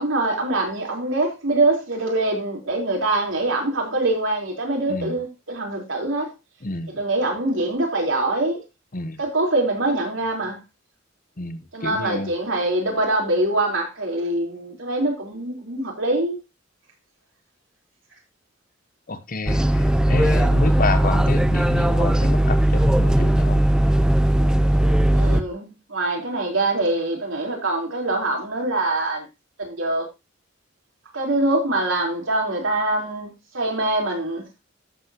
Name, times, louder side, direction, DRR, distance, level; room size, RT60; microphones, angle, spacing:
voice 1, 0.0-6.3 6.9-8.6 9.2-10.6 11.7-16.4 25.1-29.3 29.6-30.1 31.1-34.4, right 2 dB, 85° right, 4.1 m, -24 dB
voice 2, 6.6-6.9 8.9-9.2 11.4-12.3 19.1-23.7, left 3 dB, 45° left, 1.0 m, -28 dB
sound 1, 19.5-25.4, right 1 dB, 5° right, 0.5 m, -18 dB
13.0 x 8.2 x 3.0 m
head